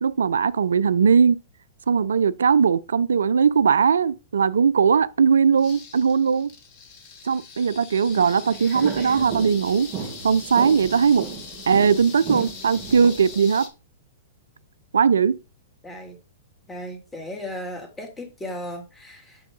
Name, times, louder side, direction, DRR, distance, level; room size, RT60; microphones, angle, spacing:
voice 1, 0.0-1.4 1.9-6.5 7.2-9.9 10.2-11.3 11.7-13.7 14.9-15.4, right 6 dB, 80° right, 0.3 m, -19 dB
sound 1, 5.6-13.7, left 5 dB, 45° left, 1.8 m, -41 dB
sound 2, 8.1-13.3, right 7 dB, 40° right, 2.2 m, -35 dB
voice 2, 15.8-16.2 16.7-19.4, left 1 dB, 10° left, 2.5 m, -36 dB
9.1 x 3.6 x 3.9 m
hypercardioid pair, 115°, 0 cm